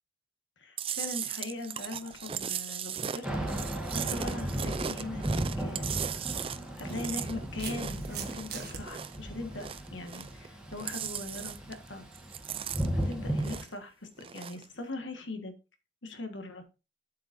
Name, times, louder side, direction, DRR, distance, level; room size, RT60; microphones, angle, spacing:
voice 1, 0.6-3.3 3.6-6.4 6.8-11.6 11.9-12.0 12.9-15.5 16.0-16.6, left 2 dB, 85° left, 6 dB, 1.6 m, -40 dB
Chewing mastication, 0.8-9.2 9.5-10.5 10.7-11.9 12.1-13.8 14.2-14.6, right 8 dB, 30° right, 0.4 m, -37 dB
Thunder / Rain, 3.2-13.6, right 1 dB, 5° right, 1.5 m, -36 dB
sound 1, 5.7-5.8 6.9-8.8, right 8 dB, 60° right, 1.4 m, -42 dB
7.9 x 7.9 x 2.6 m, 0.30 s
head